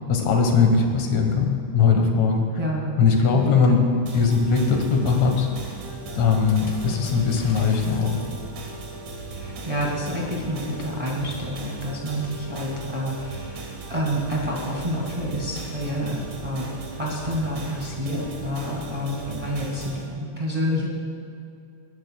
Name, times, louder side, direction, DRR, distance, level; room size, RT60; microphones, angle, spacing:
voice 1, 0.1-2.4 3.0-3.8 4.1-5.5 6.2-8.2, left 5 dB, 70° left, 3 dB, 2.5 m, -20 dB
voice 2, 2.6-2.9 3.3-3.8 9.3-13.6 13.9-20.9, equal, 20° right, -3 dB, 0.9 m, -28 dB
sound 1, 4.1-20.1, right 2 dB, 75° right, 3.0 m, -37 dB
Water / Splash splatter, 6.5-8.9, left 1 dB, 40° left, 1.4 m, -42 dB
22.0 x 11.0 x 2.3 m, 2.4 s
omnidirectional pair, 3.4 m